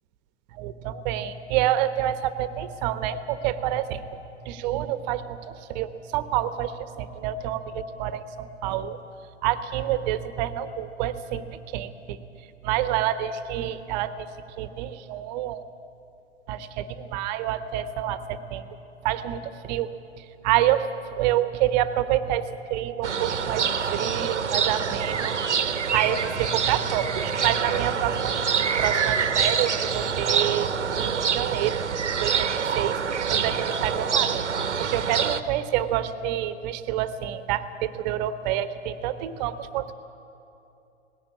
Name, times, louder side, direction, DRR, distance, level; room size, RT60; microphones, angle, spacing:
voice 1, 0.5-4.2 4.4-9.0 9.4-12.2 12.6-14.3 14.6-15.7 16.5-18.6 19.0-19.9 20.2-28.5 28.8-31.9 32.2-34.4 34.8-39.9, right 11 dB, 35° right, 12 dB, 1.1 m, -28 dB
sound 1, 23.0-35.4, right 6 dB, 80° right, 1.0 m, -26 dB
18.5 x 16.0 x 9.7 m, 2.8 s
figure-of-eight pair, 105°, 35 cm